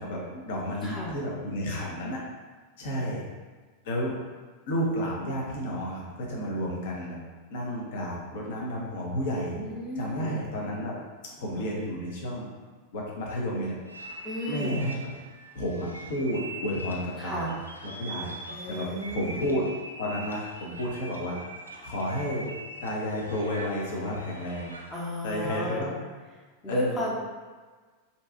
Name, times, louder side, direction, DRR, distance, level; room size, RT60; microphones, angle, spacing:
voice 1, 0.0-2.2 2.8-3.2 3.8-4.1 4.7-7.2 7.5-9.6 10.0-11.0 11.4-12.5 12.9-13.7 14.5-15.0 15.5-17.5 17.8-18.3 18.7-19.7 20.0-21.4 21.8-22.5 22.8-24.8 25.2-25.9 26.7-27.1, equal, 55° left, -3 dB, 0.6 m, -31 dB
voice 2, 0.8-1.1 3.1-3.2 9.5-10.4 11.6-11.7 14.2-14.8 17.2-17.6 18.5-19.6 24.9-25.9 26.6-27.1, left 1 dB, 15° left, -5 dB, 0.7 m, -33 dB
sound 1, 13.9-25.1, right 1 dB, 85° right, 0.3 m, -42 dB
2.6 x 2.3 x 2.5 m, 1.4 s
figure-of-eight pair, 90°, 0 cm